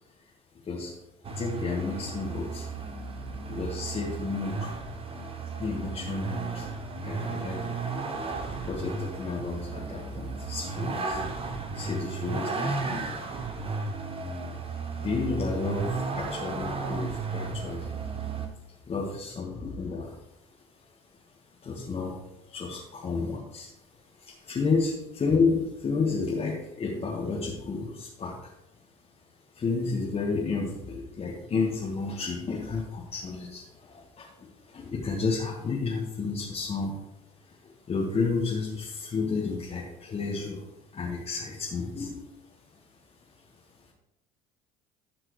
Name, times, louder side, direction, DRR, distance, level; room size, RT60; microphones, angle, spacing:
Vehicle, 1.2-18.5, right 4 dB, 30° right, 1.3 m, -34 dB
voice 1, 1.4-2.6 3.5-4.7 5.6-6.7 7.0-7.8 8.7-11.2 11.7-13.1 15.0-17.8 18.9-20.1 21.6-22.1 22.5-23.7 24.5-28.3 29.6-33.6 34.2-34.3 34.7-36.9 37.9-40.6 40.9-42.1, left 4 dB, 35° left, -3 dB, 1.6 m, -31 dB
12.5 x 6.1 x 3.2 m, 1.0 s
hypercardioid pair, 65°, 18 cm